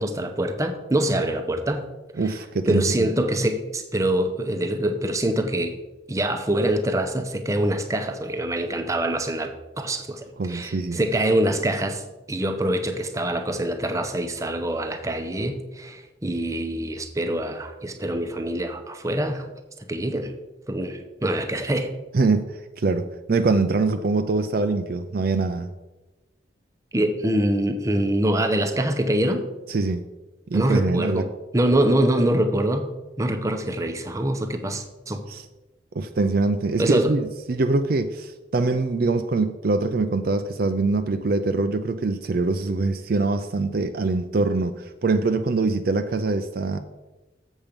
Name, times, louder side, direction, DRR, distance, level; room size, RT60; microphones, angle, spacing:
voice 1, 0.0-1.9 2.2-2.3 2.7-5.8 6.1-12.0 12.3-19.5 19.9-20.3 20.7-21.9 26.9-29.5 30.5-31.3 31.5-32.9 33.2-35.2 36.8-37.1, right 1 dB, 15° right, 6 dB, 0.7 m, -24 dB
voice 2, 2.2-3.1 10.4-11.0 22.1-25.7 29.7-30.0 30.5-31.2 35.3-35.4 35.9-46.8, right 3 dB, 50° right, 8 dB, 0.4 m, -24 dB
7.3 x 7.2 x 5.2 m, 1.1 s
head